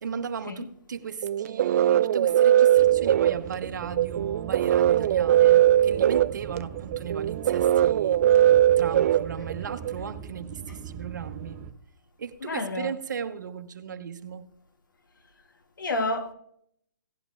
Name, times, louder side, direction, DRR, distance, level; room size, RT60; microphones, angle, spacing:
voice 1, 0.0-8.3 8.8-11.6 12.2-14.5, right 7 dB, 70° right, 1.0 m, -36 dB
sound 1, 1.2-9.9, right 11 dB, 45° right, 0.3 m, -21 dB
sound 2, 2.8-11.7, right 7 dB, 20° right, 0.8 m, -41 dB
voice 2, 12.4-12.9 15.8-16.3, left 2 dB, 85° left, 1.3 m, -29 dB
17.0 x 10.5 x 2.4 m
hypercardioid pair, 145°, 10 cm